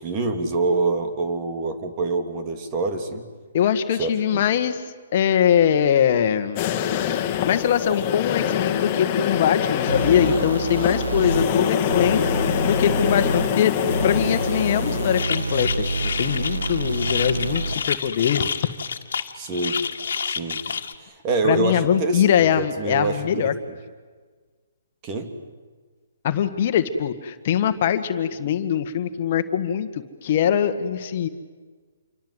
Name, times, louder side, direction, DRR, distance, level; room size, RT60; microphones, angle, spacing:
voice 1, 0.0-3.3 4.0-4.4 11.5-11.8 19.3-19.8 20.2-20.6 21.0-22.3 22.6-23.5 25.0-25.3, right 3 dB, 30° right, 6 dB, 3.1 m, -26 dB
voice 2, 3.5-4.8 5.1-6.6 7.5-12.2 12.6-13.7 14.0-18.5 21.4-23.5 26.2-31.3, left 9 dB, 45° left, 8 dB, 1.7 m, -22 dB
sound 1, 6.6-15.2, left 10 dB, 30° left, 2.2 m, -25 dB
sound 2, 9.9-17.9, right 3 dB, 90° right, 1.4 m, -28 dB
sound 3, 15.2-20.9, left 6 dB, 70° left, 2.0 m, -29 dB
28.0 x 24.5 x 8.2 m, 1.5 s
hypercardioid pair, 145°, 0 cm